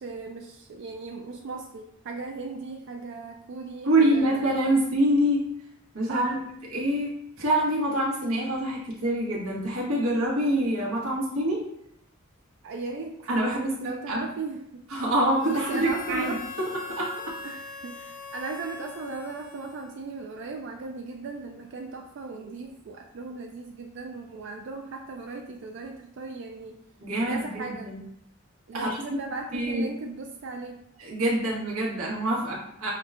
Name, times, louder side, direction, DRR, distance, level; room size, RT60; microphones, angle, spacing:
voice 1, 0.0-4.6 6.1-6.4 12.6-14.8 15.4-16.4 17.4-26.8 27.3-28.0 28.7-30.8, right 4 dB, 60° right, 3 dB, 0.3 m, -37 dB
voice 2, 3.8-5.4 5.9-6.5 6.7-11.6 13.3-14.2 14.9-16.3 17.0-17.1 27.0-28.0 28.7-29.0 29.5-29.9 31.0-32.9, right 1 dB, 90° right, -4 dB, 1.0 m, -25 dB
Harmonica, 15.3-20.2, left 4 dB, 40° left, 0.3 m, -41 dB
5.8 x 2.2 x 2.4 m, 0.74 s
head